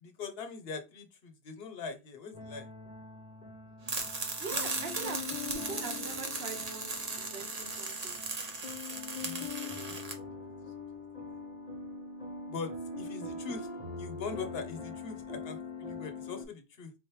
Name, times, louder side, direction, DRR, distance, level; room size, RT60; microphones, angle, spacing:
voice 1, 0.0-2.7 9.2-10.3 12.5-13.7 14.0-16.9, left 5 dB, 70° left, 1.0 m, -42 dB
sound 1, 2.3-16.4, left 4 dB, 40° left, 1.0 m, -43 dB
sound 2, 3.9-10.1, right 3 dB, 40° right, 0.8 m, -37 dB
voice 2, 4.4-8.2, right 5 dB, 65° right, 1.2 m, -43 dB
3.9 x 3.2 x 3.1 m
omnidirectional pair, 1.1 m